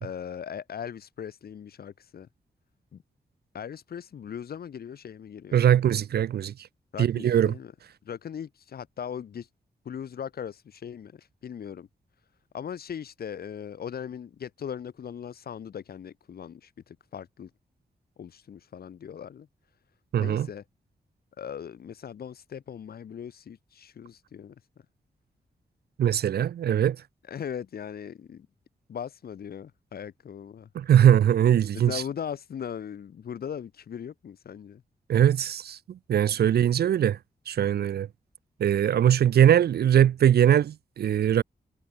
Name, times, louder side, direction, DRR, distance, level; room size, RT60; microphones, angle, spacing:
voice 1, 0.0-2.3 2.9-3.0 3.5-5.6 6.9-7.7 8.0-9.5 9.8-11.9 12.5-17.5 18.2-19.5 20.2-20.6 21.4-24.7 27.2-28.5 28.9-30.7 31.7-34.8 36.3-36.5, left 8 dB, 65° left, 0.8 m, -39 dB
voice 2, 5.5-6.5 7.0-7.5 20.1-20.5 26.0-27.0 30.7-32.0 35.1-37.2 37.5-38.1 38.6-41.4, right 10 dB, 70° right, 0.5 m, -21 dB
cardioid pair, 65°, 17 cm